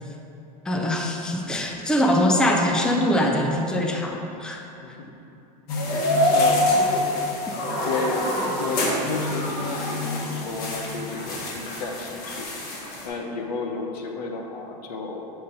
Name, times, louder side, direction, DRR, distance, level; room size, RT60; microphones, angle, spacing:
voice 1, 0.7-4.6, left 1 dB, 5° left, 1 dB, 0.4 m, -23 dB
sound 1, 5.7-13.1, left 1 dB, 50° left, 1.2 m, -25 dB
voice 2, 5.9-6.7 7.8-12.5 13.0-15.2, left 3 dB, 85° left, 2 dB, 0.8 m, -32 dB
6.7 x 2.6 x 5.5 m, 2.9 s
supercardioid pair, 120°, 20 cm